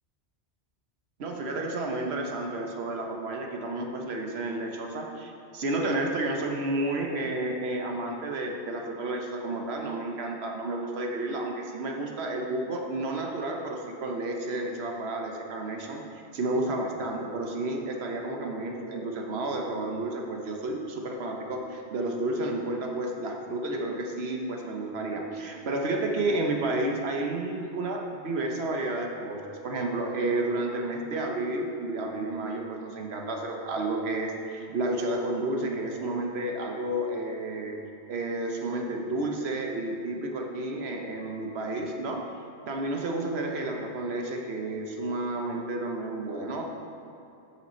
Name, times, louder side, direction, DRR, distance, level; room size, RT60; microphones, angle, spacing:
voice 1, 1.2-16.0 16.3-37.7 38.1-42.2 42.6-46.6, right 2 dB, 70° right, 2 dB, 1.0 m, -31 dB
7.7 x 6.4 x 4.3 m, 2.8 s
omnidirectional pair, 1.1 m